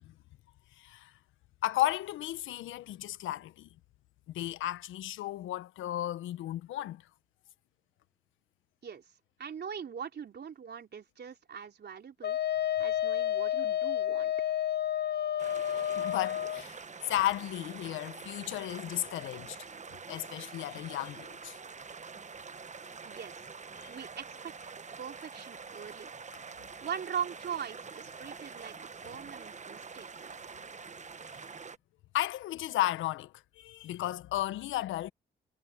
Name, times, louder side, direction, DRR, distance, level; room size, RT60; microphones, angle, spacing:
voice 1, 0.8-1.1 1.6-3.7 4.3-7.0 16.0-19.6 20.1-21.6 23.7-23.9 31.3-31.4 32.1-35.1, left 14 dB, 80° left, 1.3 m, -34 dB
voice 2, 9.4-12.4 12.8-14.3 23.0-23.5 23.9-26.1 26.8-28.8 29.0-30.4, right 8 dB, 55° right, 3.6 m, -41 dB
Wind instrument woodwind instrument, 12.2-16.6, left 11 dB, 55° left, 1.3 m, -30 dB
sound 1, 15.4-31.8, right 5 dB, 35° right, 1.3 m, -46 dB
hypercardioid pair, 45°, 20 cm